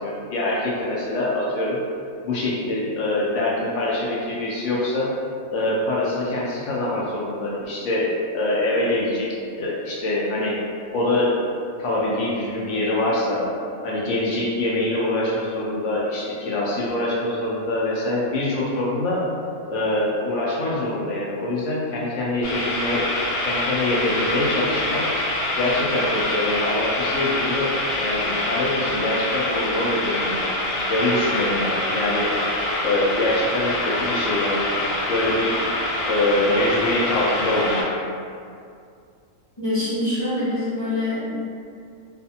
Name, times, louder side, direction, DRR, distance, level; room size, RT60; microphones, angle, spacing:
voice 1, 0.0-1.8 2.2-5.1 5.5-9.3 9.6-10.6 10.9-11.3 11.8-13.5 13.8-19.2 19.7-23.0 23.5-25.1 25.6-27.7 28.0-30.5 30.9-32.3 32.8-34.7 35.1-35.5 36.0-37.8, left 1 dB, 65° left, -5 dB, 0.7 m, -24 dB
sound 1, 22.4-37.8, left 1 dB, 85° left, 1.1 m, -25 dB
voice 2, 39.6-41.3, left 1 dB, 25° left, -12 dB, 0.6 m, -25 dB
2.5 x 2.4 x 2.6 m, 2.4 s
omnidirectional pair, 1.6 m